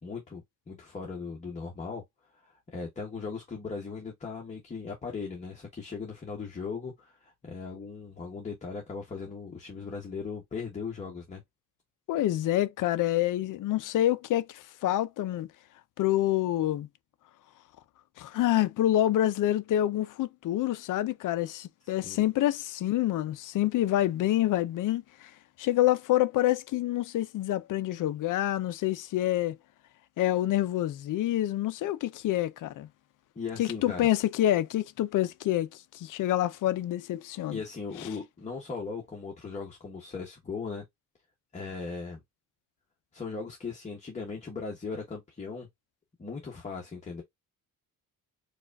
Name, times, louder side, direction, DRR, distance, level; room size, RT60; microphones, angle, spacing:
voice 1, 0.0-2.0 2.3-11.4 22.0-22.2 33.3-34.0 37.5-40.8 41.5-42.2 43.1-45.7 46.2-47.2, left 4 dB, 20° left, 1.0 m, -38 dB
voice 2, 12.1-15.5 16.0-16.9 18.2-25.3 25.6-29.6 30.2-32.9 33.6-37.6, left 13 dB, 60° left, 0.6 m, -27 dB
4.8 x 2.4 x 2.3 m
cardioid pair, 165°, 35 cm